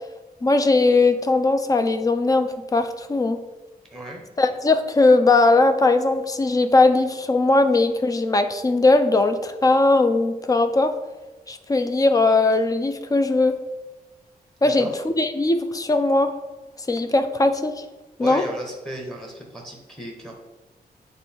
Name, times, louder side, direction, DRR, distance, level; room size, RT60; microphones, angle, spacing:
voice 1, 0.4-3.4 4.4-10.9 11.5-13.6 14.6-16.3 16.9-17.8 18.2-18.4, left 2 dB, 20° left, 9 dB, 0.4 m, -19 dB
voice 2, 3.9-4.2 14.6-14.9 18.2-20.3, right 1 dB, 5° left, 0 dB, 1.0 m, -35 dB
7.9 x 3.5 x 4.3 m, 1.1 s
wide cardioid pair, 180°, 16 cm